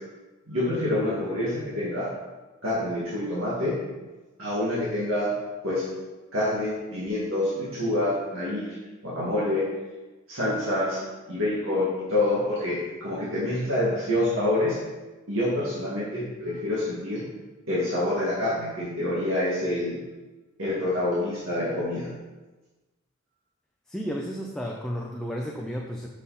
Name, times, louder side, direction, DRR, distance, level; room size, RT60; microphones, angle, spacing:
voice 1, 0.5-2.1 2.6-3.8 4.4-5.3 5.6-5.8 6.3-8.8 9.0-9.6 10.3-11.0 11.3-14.8 15.3-17.2 17.7-20.0 20.6-22.1, left 1 dB, 80° right, -9 dB, 2.2 m, -27 dB
voice 2, 23.9-26.1, equal, 5° left, -1 dB, 0.5 m, -32 dB
7.1 x 5.4 x 4.2 m, 1.2 s
head